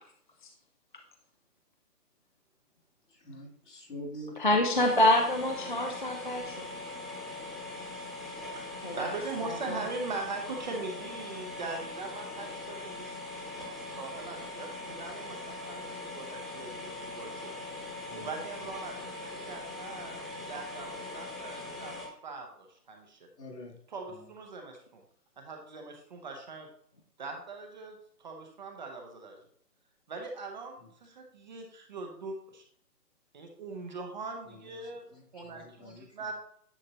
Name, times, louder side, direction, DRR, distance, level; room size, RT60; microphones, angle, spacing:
voice 1, 3.2-4.3 18.1-18.3 23.4-23.7 35.1-36.1, left 1 dB, 70° left, -2 dB, 3.2 m, -44 dB
voice 2, 4.4-6.7 8.8-9.1 9.4-9.8, left 1 dB, 35° left, 3 dB, 0.4 m, -27 dB
sound 1, 4.7-22.1, left 2 dB, ahead, 1.1 m, -41 dB
voice 3, 8.5-13.2 13.9-23.3 23.9-25.0 25.4-26.7 27.2-29.4 30.1-32.6 33.3-35.1 35.3-36.3, right 3 dB, 30° right, 3 dB, 0.7 m, -41 dB
9.9 x 5.0 x 2.9 m, 0.67 s
figure-of-eight pair, 145°, 49 cm